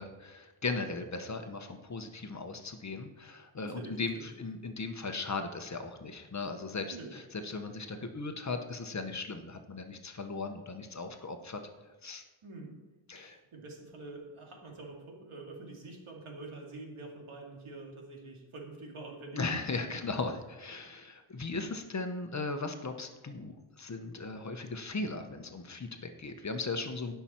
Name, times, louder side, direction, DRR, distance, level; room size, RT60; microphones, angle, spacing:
voice 1, 0.0-11.6 12.0-12.2 13.1-13.4 19.3-27.1, left 3 dB, 35° left, 6 dB, 0.9 m, -37 dB
voice 2, 3.6-4.3 6.9-7.1 12.4-12.8 13.1-19.6 19.9-20.0, right 2 dB, 90° right, 0 dB, 2.3 m, -46 dB
17.5 x 5.8 x 4.4 m, 1.2 s
wide cardioid pair, 165°, 48 cm